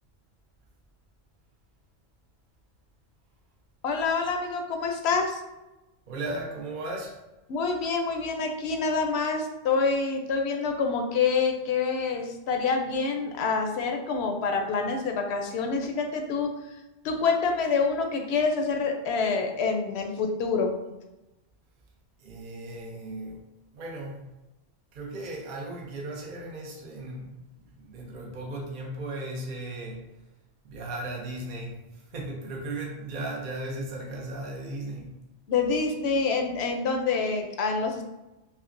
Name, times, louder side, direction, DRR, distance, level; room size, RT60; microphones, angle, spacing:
voice 1, 3.8-5.4 7.5-16.5 17.0-20.7 35.5-38.1, left 4 dB, 65° left, 3 dB, 0.8 m, -27 dB
voice 2, 6.1-7.2 22.2-23.4 23.7-24.3 24.9-27.4 27.7-30.1 30.6-35.1, right 2 dB, 50° right, 0 dB, 0.7 m, -36 dB
5.6 x 2.0 x 2.5 m, 1.0 s
omnidirectional pair, 1.3 m